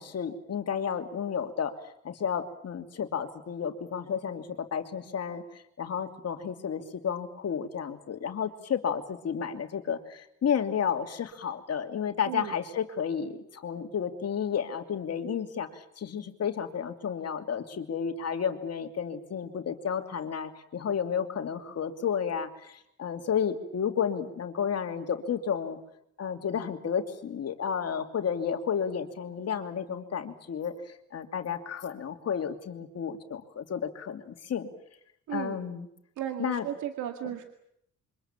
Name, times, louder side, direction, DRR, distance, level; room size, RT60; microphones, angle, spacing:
voice 1, 0.0-1.7 2.0-25.8 26.2-34.7 35.3-35.9 36.4-36.7, left 7 dB, 55° left, 6 dB, 2.9 m, -32 dB
voice 2, 36.2-37.4, right 10 dB, 80° right, 6 dB, 2.2 m, -35 dB
27.0 x 24.5 x 7.4 m, 0.73 s
cardioid pair, 90°, 30 cm